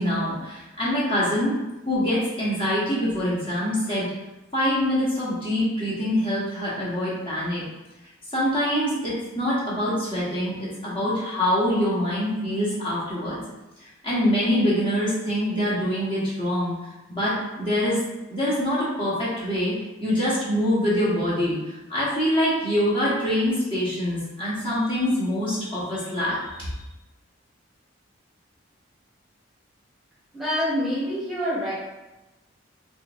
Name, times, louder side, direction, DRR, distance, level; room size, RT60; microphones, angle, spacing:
voice 1, 0.0-1.5 1.8-4.0 4.5-7.6 8.3-10.5 10.8-13.4 13.8-16.8 17.1-18.0 18.3-19.7 20.0-26.7, equal, 25° left, -9 dB, 1.2 m, -24 dB
voice 2, 30.3-31.7, equal, ahead, -10 dB, 1.1 m, -26 dB
5.3 x 2.5 x 2.6 m, 1.0 s
head